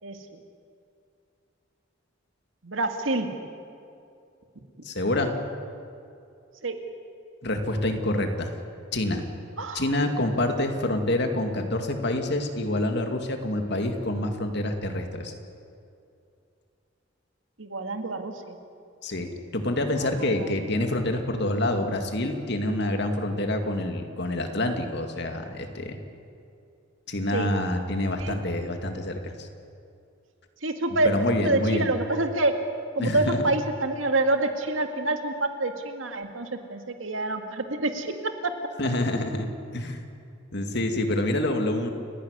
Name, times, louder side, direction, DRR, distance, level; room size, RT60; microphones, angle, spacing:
voice 1, 0.0-0.4 2.6-3.3 6.6-6.7 9.6-9.9 17.6-18.6 19.9-20.1 20.4-20.5 27.3-27.5 28.2-28.4 30.6-32.5 33.0-38.1 38.4-38.5, right 2 dB, 85° right, 6 dB, 2.1 m, -27 dB
voice 2, 4.8-5.3 7.4-8.5 8.9-9.2 9.7-15.3 19.0-26.0 27.1-29.5 31.0-31.9 33.0-33.4 38.8-39.5 39.7-40.0 40.5-41.9, left 1 dB, 60° left, 5 dB, 2.3 m, -27 dB
30.0 x 11.5 x 9.8 m, 2.5 s
head